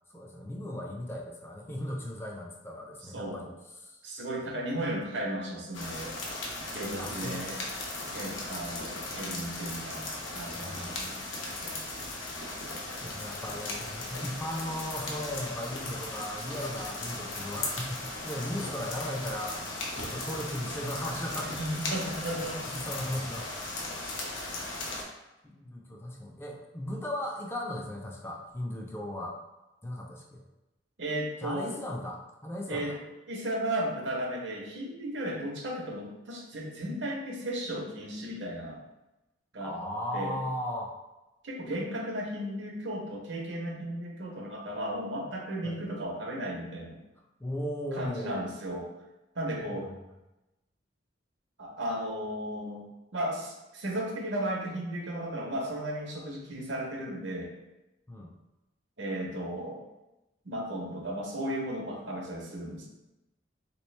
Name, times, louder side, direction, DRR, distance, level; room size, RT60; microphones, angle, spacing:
voice 1, 0.1-3.5 3.8-4.0 6.9-7.4 8.1-8.2 10.5-11.1 13.0-19.6 19.9-21.6 22.6-23.5 25.4-29.4 29.8-30.4 31.4-33.0 39.6-40.9 45.6-45.8 47.4-48.5 49.6-49.7 58.1-58.3, left 1 dB, 15° left, -1 dB, 0.4 m, -37 dB
voice 2, 3.1-3.5 4.0-6.1 6.7-7.6 8.1-11.2 11.4-11.8 21.4-22.6 31.0-31.7 32.7-33.0 33.3-38.8 39.5-39.7 40.1-40.4 41.4-47.0 47.9-48.9 49.3-49.9 51.6-52.8 53.1-57.5 59.0-59.8 60.4-62.9, right 1 dB, 70° right, -1 dB, 0.8 m, -35 dB
sound 1, 5.7-25.0, left 2 dB, 85° left, 0.8 m, -37 dB
3.4 x 3.0 x 3.1 m, 0.99 s
head